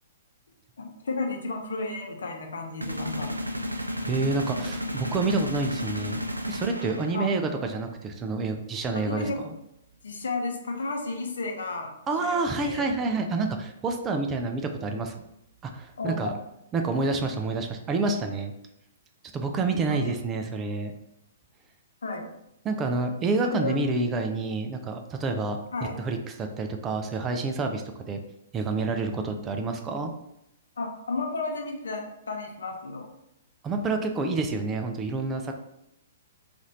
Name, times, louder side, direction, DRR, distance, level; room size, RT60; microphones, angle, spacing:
voice 1, 0.8-3.3 7.1-7.4 9.1-9.4 10.0-11.9 12.2-12.9 16.0-16.3 19.9-20.1 22.0-22.3 23.4-23.8 25.7-25.9 30.8-33.1, left 3 dB, 65° left, 2 dB, 0.7 m, -33 dB
sound 1, 2.8-7.5, equal, 85° right, 0.4 m, -33 dB
voice 2, 4.1-6.2 6.5-9.5 12.1-15.1 15.6-16.3 16.7-18.5 19.3-20.9 22.6-25.6 26.0-28.2 28.5-30.1 33.6-35.5, right 3 dB, 20° right, 4 dB, 0.4 m, -28 dB
3.0 x 2.5 x 4.0 m, 0.80 s
figure-of-eight pair, 115°, 0 cm